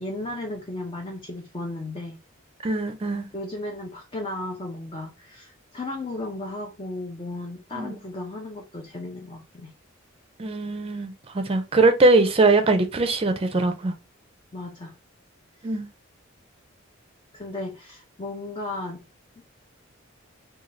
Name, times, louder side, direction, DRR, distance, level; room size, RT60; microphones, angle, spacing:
voice 1, 0.0-2.2 3.3-9.7 14.5-14.9 15.6-15.8 17.3-19.0 19.4-19.5, left 2 dB, 25° left, 0.5 m, -35 dB
voice 2, 2.6-3.3 7.7-7.9 10.4-13.9 15.6-15.9, right 2 dB, 30° right, 0.5 m, -21 dB
3.8 x 2.3 x 3.1 m
head